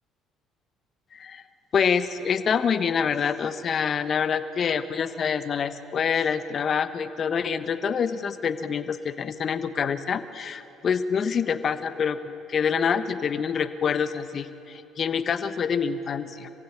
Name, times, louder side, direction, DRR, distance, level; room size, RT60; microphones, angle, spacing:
voice 1, 1.1-1.4 1.7-16.5, left 6 dB, 50° left, 12 dB, 1.2 m, -26 dB
25.5 x 16.0 x 9.5 m, 2.8 s
hypercardioid pair, 55°, 0 cm